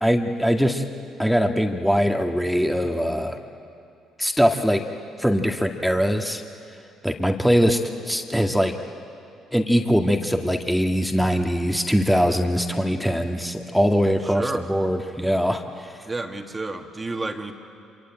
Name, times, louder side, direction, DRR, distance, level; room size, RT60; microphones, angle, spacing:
voice 1, 0.0-0.8 1.2-3.4 4.2-4.8 5.2-6.4 7.0-7.8 8.1-8.7 9.5-16.0, equal, ahead, 3 dB, 2.0 m, -22 dB
voice 2, 14.2-14.7 16.1-17.5, right 2 dB, 25° right, 4 dB, 2.2 m, -30 dB
27.0 x 24.0 x 8.9 m, 2.6 s
hypercardioid pair, 50°, 0 cm